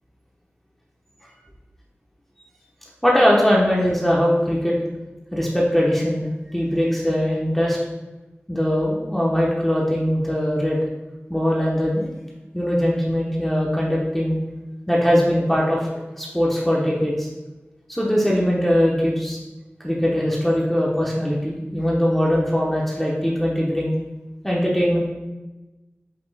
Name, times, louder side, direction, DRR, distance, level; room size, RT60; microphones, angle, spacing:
voice 1, 3.0-4.8 5.3-7.8 8.5-10.8 11.3-12.1 12.5-14.4 14.9-15.9 16.2-17.3 17.9-19.4 19.8-23.9 24.4-25.0, equal, 5° left, -5 dB, 0.7 m, -21 dB
5.2 x 2.8 x 3.3 m, 1.1 s
wide cardioid pair, 70°, 4 cm